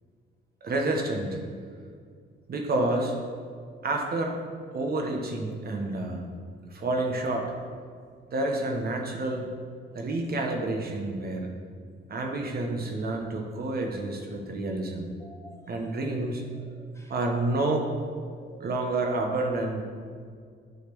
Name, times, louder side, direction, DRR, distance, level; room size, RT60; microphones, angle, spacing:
voice 1, 0.6-1.4 2.5-3.2 3.8-4.4 4.7-6.2 6.7-7.5 8.3-9.5 9.9-11.5 12.1-15.1 15.7-16.4 17.1-17.9 18.6-19.8, right 2 dB, 50° right, 2 dB, 1.2 m, -29 dB
voice 2, 15.2-15.7 16.5-17.1 18.4-18.7, right 1 dB, 15° left, -1 dB, 1.6 m, -50 dB
8.4 x 4.2 x 6.9 m, 2.1 s
cardioid pair, 90°, 20 cm